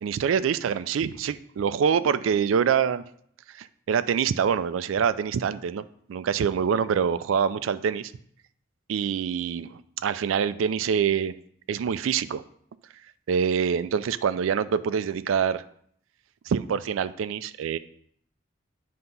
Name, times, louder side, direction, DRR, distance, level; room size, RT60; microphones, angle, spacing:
voice 1, 0.0-3.0 3.5-5.8 6.1-8.1 8.9-11.3 11.7-12.4 13.3-15.6 16.5-17.8, right 7 dB, 85° right, 14 dB, 0.3 m, -25 dB
7.9 x 2.8 x 5.3 m, 0.65 s
head